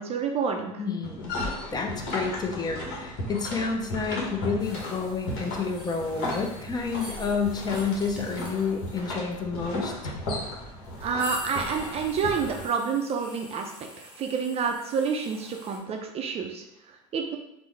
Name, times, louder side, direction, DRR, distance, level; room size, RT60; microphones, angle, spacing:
voice 1, 0.0-0.9 11.0-13.7 14.0-17.4, right 5 dB, 35° right, 4 dB, 0.4 m, -29 dB
voice 2, 0.8-10.1, left 5 dB, 25° left, 2 dB, 0.5 m, -30 dB
sound 1, 1.0-12.7, left 1 dB, 60° left, 1.0 m, -35 dB
sound 2, 4.6-15.8, right 1 dB, 5° right, 0.8 m, -46 dB
3.4 x 2.0 x 3.1 m, 0.82 s
hypercardioid pair, 90°, 17 cm